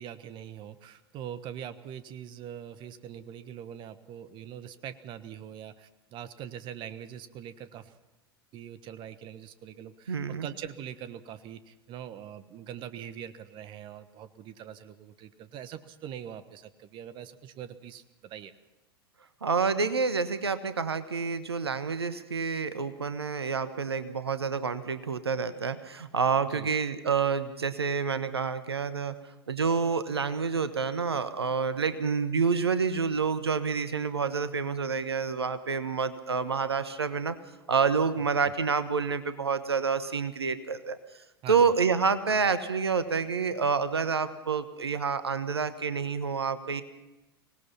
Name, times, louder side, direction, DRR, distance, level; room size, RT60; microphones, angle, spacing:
voice 1, 0.0-8.0 8.5-18.5 26.5-26.7 38.2-38.5 41.4-41.7, right 9 dB, 40° right, 12 dB, 1.3 m, -43 dB
voice 2, 10.1-10.5 19.4-29.1 29.5-37.4 37.7-41.0 41.5-46.8, right 5 dB, 80° right, 12 dB, 1.2 m, -28 dB
24.5 x 19.0 x 5.8 m, 1.0 s
figure-of-eight pair, 85°, 13 cm